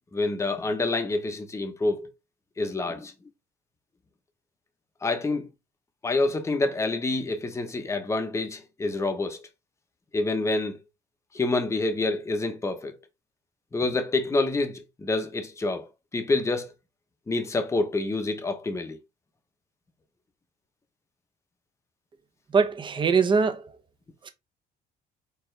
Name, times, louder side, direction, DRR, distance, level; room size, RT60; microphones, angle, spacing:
voice 1, 0.1-2.1 2.6-3.1 5.0-5.5 6.0-9.5 10.1-10.8 11.3-13.0 13.7-16.7 17.3-19.0, left 2 dB, 15° left, 0.8 m, -27 dB
voice 2, 22.5-23.6, right 5 dB, 30° right, 0.8 m, -22 dB
4.5 x 3.5 x 3.2 m
cardioid pair, 110°, 17 cm